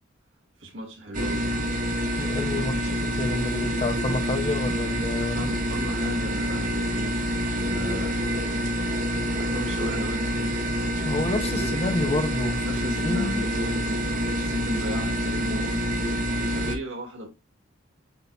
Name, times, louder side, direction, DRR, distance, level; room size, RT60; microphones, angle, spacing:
voice 1, 0.6-1.5 2.5-2.7 5.2-7.2 7.5-8.3 9.1-10.6 11.1-11.8 12.6-15.8 16.5-17.3, equal, 75° right, 1.9 m, -36 dB
sound 1, 1.1-16.8, equal, 40° right, 0.8 m, -27 dB
voice 2, 2.2-5.5 11.0-13.5, left 2 dB, 30° left, 0.5 m, -29 dB
7.9 x 2.8 x 2.2 m
head